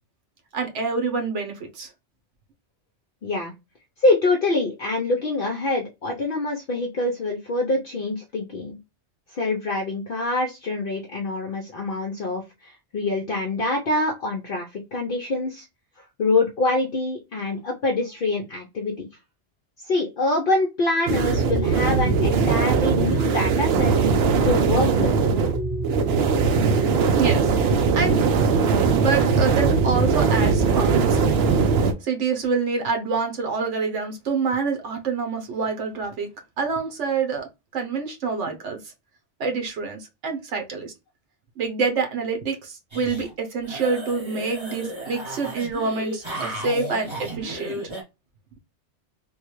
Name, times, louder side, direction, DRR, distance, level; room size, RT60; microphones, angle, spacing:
voice 1, 0.5-1.9 27.1-28.2 28.8-31.4 32.0-36.3 36.6-37.5 37.7-38.8 39.4-40.9 41.6-47.8, right 4 dB, 85° right, 1.2 m, -27 dB
voice 2, 3.2-3.5 4.0-8.8 9.3-15.7 16.2-19.1 19.8-23.9 24.4-25.1, left 2 dB, 55° left, 0.7 m, -25 dB
sound 1, 21.1-31.9, right 5 dB, 65° right, 0.8 m, -20 dB
sound 2, 42.9-43.3 43.6-48.0, right 1 dB, 25° right, 1.2 m, -34 dB
3.5 x 2.3 x 3.0 m
omnidirectional pair, 1.2 m